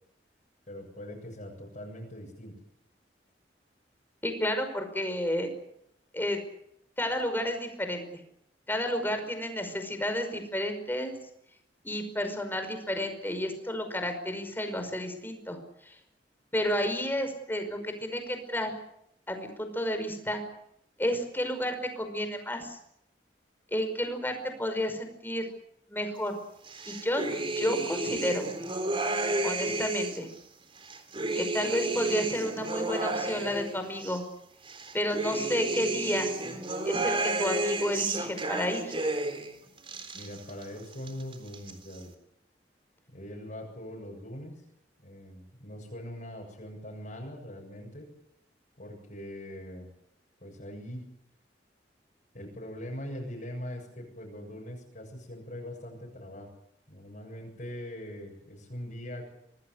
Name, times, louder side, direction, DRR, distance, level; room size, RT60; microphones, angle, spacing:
voice 1, 0.7-2.5 40.1-42.1 43.1-44.6 45.0-48.1 48.8-49.9 50.4-51.0 52.3-56.5 56.9-59.3, equal, 50° left, -3 dB, 7.5 m, -42 dB
voice 2, 4.2-5.5 6.1-6.4 7.0-8.0 8.7-11.1 11.8-15.9 16.5-18.7 19.3-20.4 21.0-22.8 23.7-25.5 25.9-26.4 26.8-27.2 27.5-28.5 29.4-30.3 31.3-34.2 34.9-36.3 36.8-38.9, left 1 dB, 10° left, 7 dB, 5.3 m, -31 dB
sound 1, 26.7-30.3 30.8-34.2 34.7-39.5 39.8-40.7 40.9-41.7, right 2 dB, 30° right, 3.8 m, -32 dB
26.5 x 19.5 x 8.1 m, 0.76 s
head